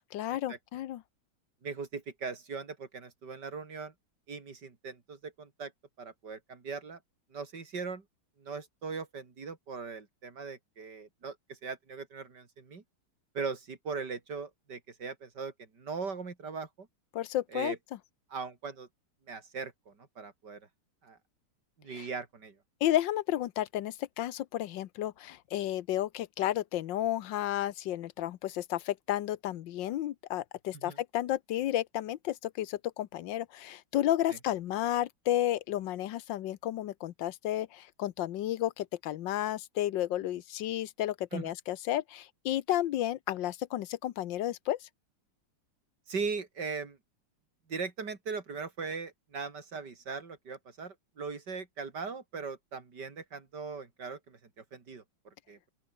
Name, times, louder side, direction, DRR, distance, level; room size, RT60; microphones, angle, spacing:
voice 1, 0.1-1.0 17.1-17.7 21.9-22.1 22.8-44.9, left 13 dB, 75° left, 1.5 m, -32 dB
voice 2, 1.6-3.9 4.3-5.7 6.0-7.0 7.3-8.0 8.4-12.8 13.3-16.9 17.5-17.8 18.3-18.9 19.3-20.7 21.0-21.2 21.8-22.6 30.7-31.0 34.3-34.4 41.3-41.5 46.1-47.0 47.7-55.7, right 5 dB, 60° right, 3.6 m, -39 dB
open air
omnidirectional pair, 2.1 m